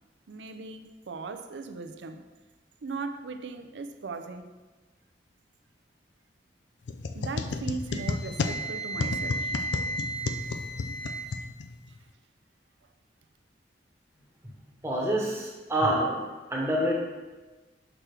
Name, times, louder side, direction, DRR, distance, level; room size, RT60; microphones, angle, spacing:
voice 1, 0.3-2.2 2.8-4.5 7.1-9.6, right 4 dB, 70° right, 0.5 m, -38 dB
sound 1, 6.9-12.0, left 3 dB, 75° left, 0.4 m, -33 dB
Wind instrument woodwind instrument, 7.9-11.4, right 2 dB, 20° left, 1.0 m, -35 dB
voice 2, 14.5-16.2 16.5-17.0, right 1 dB, 15° right, 1.1 m, -27 dB
6.0 x 6.0 x 3.3 m
head